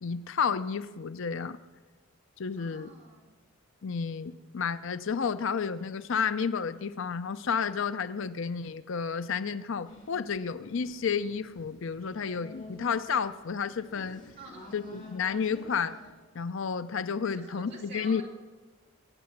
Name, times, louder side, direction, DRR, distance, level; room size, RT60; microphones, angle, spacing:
voice 1, 0.0-1.6 2.4-2.9 3.8-14.2 14.7-16.0 16.3-18.2, left 6 dB, 60° left, 13 dB, 0.5 m, -31 dB
voice 2, 2.6-3.4 14.4-14.8 17.2-18.2, right 2 dB, 45° right, -1 dB, 3.1 m, -48 dB
sound 1, 9.8-16.1, left 2 dB, 35° left, 3.1 m, -50 dB
22.5 x 8.7 x 7.2 m, 1.3 s
head